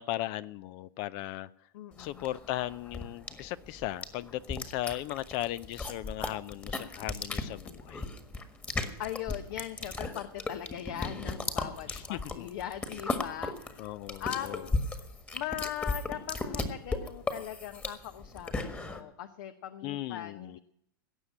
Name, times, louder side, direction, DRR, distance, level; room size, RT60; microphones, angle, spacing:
voice 1, 0.0-1.5 2.0-8.1 11.9-12.5 13.8-14.6 19.8-20.6, left 15 dB, 45° left, 19 dB, 0.4 m, -37 dB
voice 2, 1.7-2.3 9.0-15.1 15.3-20.6, left 11 dB, 65° left, 10 dB, 0.9 m, -40 dB
sound 1, 2.0-19.0, left 3 dB, 15° left, 1.6 m, -36 dB
17.0 x 6.6 x 9.9 m, 0.74 s
hypercardioid pair, 135°, 12 cm